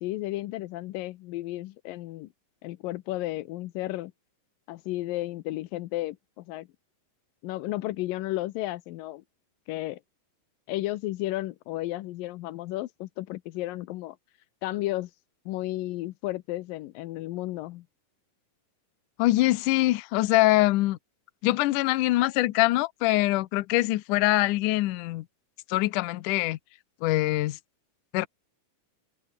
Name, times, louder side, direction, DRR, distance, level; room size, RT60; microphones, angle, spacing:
voice 1, 0.0-2.3 2.6-4.1 4.7-6.7 7.4-9.2 9.7-10.0 10.7-14.2 14.6-15.1 15.5-17.9, left 17 dB, 90° left, 2.5 m, -33 dB
voice 2, 19.2-21.0 21.4-25.3 25.7-26.6 27.0-27.6 28.1-28.3, left 18 dB, 75° left, 2.2 m, -23 dB
omnidirectional pair, 4.0 m